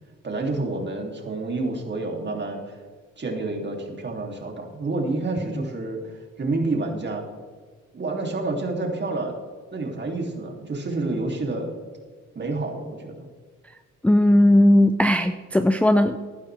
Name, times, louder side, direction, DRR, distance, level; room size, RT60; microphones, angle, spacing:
voice 1, 0.2-2.8 3.2-7.2 7.9-9.3 9.7-11.7 12.3-13.1, right 2 dB, 35° right, 1 dB, 2.8 m, -29 dB
voice 2, 14.0-16.2, left 1 dB, 5° left, 7 dB, 0.5 m, -17 dB
16.0 x 11.0 x 3.4 m, 1.5 s
cardioid pair, 90°, 30 cm